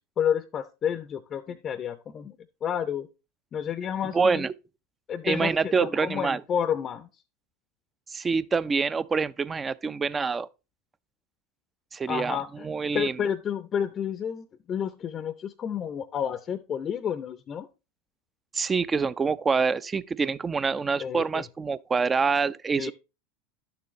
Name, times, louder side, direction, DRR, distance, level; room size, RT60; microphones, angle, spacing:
voice 1, 0.2-3.1 3.5-4.4 5.1-7.1 12.1-12.7 12.9-17.7 21.0-21.4 22.8-22.9, left 8 dB, 35° left, 0.5 m, -30 dB
voice 2, 4.1-4.5 5.2-6.4 8.1-10.5 11.9-12.4 12.6-13.2 18.5-22.9, right 5 dB, 20° right, 0.4 m, -26 dB
10.5 x 6.9 x 3.1 m
figure-of-eight pair, 80°, 0 cm